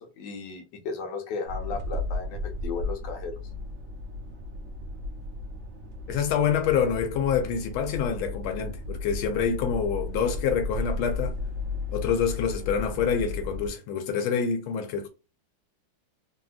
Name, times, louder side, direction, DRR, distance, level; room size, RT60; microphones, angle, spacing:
voice 1, 0.0-3.4, left 4 dB, 70° left, 1.4 m, -35 dB
sound 1, 1.5-13.7, left 2 dB, 80° right, 0.6 m, -34 dB
voice 2, 6.1-11.4 11.9-15.1, left 7 dB, 90° left, 1.4 m, -26 dB
3.3 x 2.7 x 2.3 m
omnidirectional pair, 2.2 m